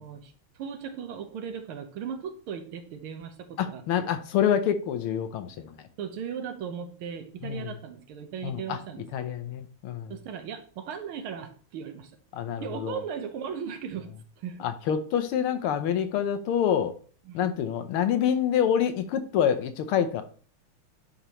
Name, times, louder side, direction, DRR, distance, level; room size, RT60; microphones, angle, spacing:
voice 1, 0.0-4.1 6.0-9.0 10.1-12.1 12.6-14.1 14.4-14.6 17.3-17.6, right 7 dB, 75° right, 8 dB, 1.7 m, -37 dB
voice 2, 3.6-5.7 7.4-7.7 8.4-8.8 9.1-10.1 12.3-13.0 14.6-16.9 17.3-20.2, left 9 dB, 80° left, 9 dB, 1.6 m, -27 dB
9.8 x 5.2 x 3.0 m, 0.42 s
omnidirectional pair, 2.4 m